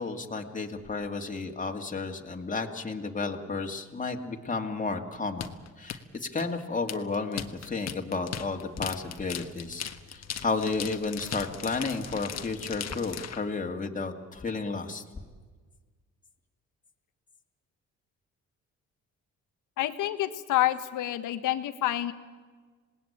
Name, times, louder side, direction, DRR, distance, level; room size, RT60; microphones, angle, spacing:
voice 1, 0.0-15.3, left 3 dB, 25° left, 3 dB, 2.4 m, -32 dB
sound 1, 5.4-13.4, left 8 dB, 60° left, 1.5 m, -38 dB
voice 2, 19.8-22.1, left 14 dB, 85° left, 10 dB, 1.5 m, -28 dB
27.0 x 19.0 x 8.9 m, 1.4 s
cardioid pair, 90°, 30 cm